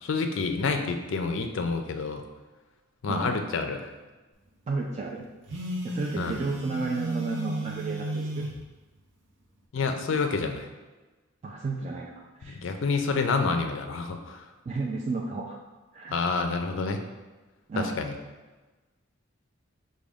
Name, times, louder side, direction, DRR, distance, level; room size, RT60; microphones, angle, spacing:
voice 1, 0.0-2.2 3.0-3.9 6.2-6.4 9.7-10.7 12.4-14.4 16.1-17.0 17.8-18.1, left 4 dB, 65° left, 6 dB, 0.4 m, -28 dB
voice 2, 3.1-3.4 4.7-5.3 5.8-8.5 11.4-12.7 14.7-15.6 15.9-16.2 17.7-18.0, right 3 dB, 35° right, -2 dB, 0.3 m, -32 dB
Telephone, 5.5-8.6, right 2 dB, 60° right, 0.7 m, -33 dB
6.1 x 2.2 x 3.4 m, 1.2 s
head